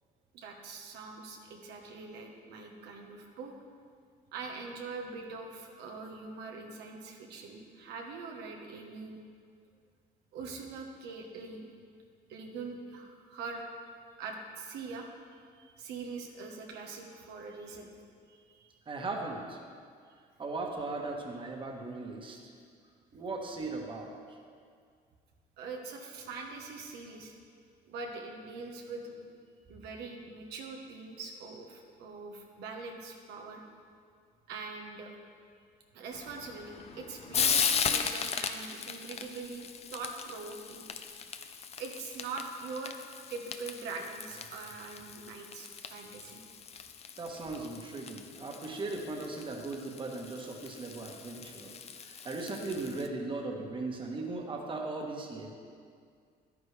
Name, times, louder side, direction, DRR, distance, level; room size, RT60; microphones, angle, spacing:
voice 1, 0.3-3.5 4.3-9.2 10.3-11.7 12.3-13.6 14.2-17.9 18.3-18.7 25.6-27.3 27.9-29.3 29.7-33.6 34.5-35.1 35.9-40.8 41.8-42.9 43.3-46.4, right 4 dB, 80° right, 1 dB, 1.2 m, -43 dB
voice 2, 18.9-19.6 20.4-22.5 23.1-24.1 47.2-51.7 52.0-55.5, right 3 dB, 30° right, 1 dB, 1.3 m, -38 dB
Frying (food), 36.1-53.1, left 6 dB, 40° left, 0.6 m, -37 dB
11.0 x 9.8 x 3.3 m, 2.2 s
cardioid pair, 110°, 17 cm